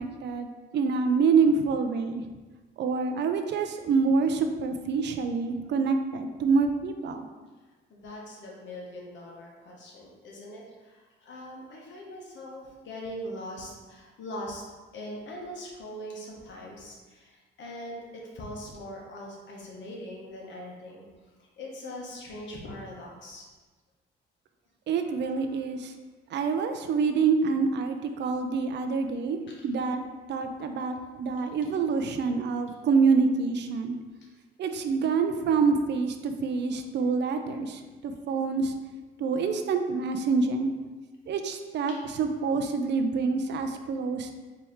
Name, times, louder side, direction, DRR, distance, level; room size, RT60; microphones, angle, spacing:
voice 1, 0.0-2.2 2.8-7.3 24.9-25.9 26.3-30.0 30.3-34.0 34.6-38.7 39.2-40.7 41.3-44.3, right 5 dB, 60° right, 6 dB, 0.5 m, -26 dB
voice 2, 7.9-14.6 14.9-21.0 21.6-23.4 29.5-29.6 41.9-42.0, equal, 65° left, -2 dB, 1.1 m, -41 dB
4.4 x 2.9 x 3.5 m, 1.3 s
cardioid pair, 90°, 20 cm